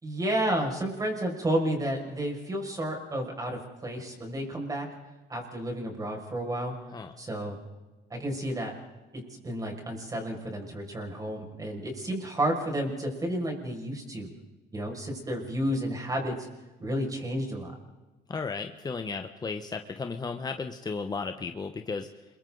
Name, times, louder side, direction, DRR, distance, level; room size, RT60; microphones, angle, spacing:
voice 1, 0.0-4.9 5.3-6.7 7.2-7.6 8.1-8.7 9.1-14.3 14.7-16.3 16.8-17.7, right 1 dB, 20° right, 1 dB, 6.1 m, -31 dB
voice 2, 18.3-22.1, left 4 dB, 25° left, 6 dB, 1.1 m, -34 dB
29.0 x 23.0 x 4.0 m, 1.2 s
cardioid pair, 110°, 17 cm